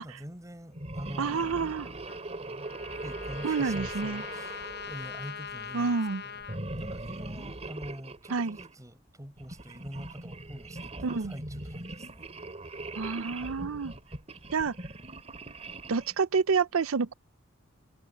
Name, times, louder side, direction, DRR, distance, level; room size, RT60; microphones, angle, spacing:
voice 1, 0.0-2.1 3.0-6.0 6.2-6.4 6.8-12.3, equal, 15° right, 6.0 m, -45 dB
sound 1, 0.7-5.6 6.4-8.7 9.4-16.2, right 2 dB, 30° right, 3.0 m, -40 dB
voice 2, 1.2-1.9 3.4-4.2 5.7-6.2 8.3-8.6 11.0-11.3 12.9-13.9 14.5-14.8 15.9-17.1, right 5 dB, 80° right, 0.6 m, -28 dB
Trumpet, 2.1-6.6, left 7 dB, 55° left, 1.2 m, -42 dB
head